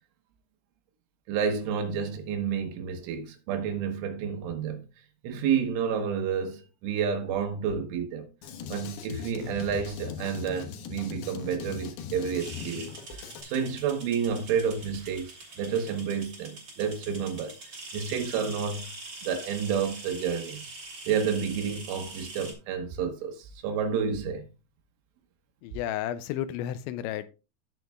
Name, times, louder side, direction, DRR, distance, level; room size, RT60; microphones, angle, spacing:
voice 1, 1.3-4.9 5.2-8.3 8.7-17.6 17.9-18.9 19.2-20.6 21.1-24.5, right 7 dB, 75° right, 3.5 m, -30 dB
Drum kit, 8.4-13.4, left 7 dB, 70° left, 2.6 m, -39 dB
sound 1, 12.4-22.5, right 2 dB, 30° right, 2.6 m, -44 dB
voice 2, 25.6-27.3, left 11 dB, 90° left, 2.6 m, -32 dB
17.5 x 6.4 x 2.3 m
omnidirectional pair, 5.8 m